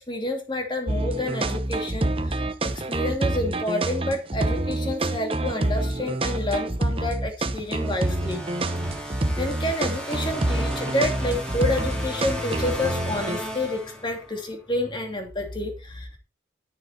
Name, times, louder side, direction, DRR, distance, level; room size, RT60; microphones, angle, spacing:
voice 1, 0.0-8.5 9.0-16.2, left 1 dB, 25° left, 3 dB, 2.9 m, -29 dB
sound 1, 0.9-13.4, right 1 dB, 30° right, 0.9 m, -27 dB
sound 2, 7.7-14.4, equal, 5° left, 4.0 m, -34 dB
11.0 x 10.0 x 4.0 m, 0.29 s
head